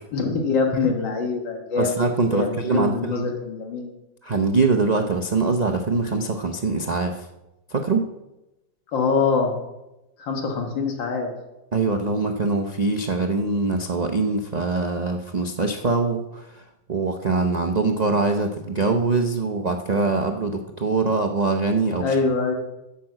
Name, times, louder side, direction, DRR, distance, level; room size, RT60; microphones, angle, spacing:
voice 1, 0.1-2.0 2.3-3.9 8.9-9.5 10.2-11.3 22.0-22.5, left 4 dB, 85° left, 2 dB, 2.1 m, -24 dB
voice 2, 1.8-3.2 4.2-7.3 7.7-8.1 11.7-16.6 16.9-22.2, right 3 dB, 80° right, 2 dB, 0.3 m, -23 dB
10.0 x 6.8 x 7.7 m, 0.97 s
omnidirectional pair, 2.0 m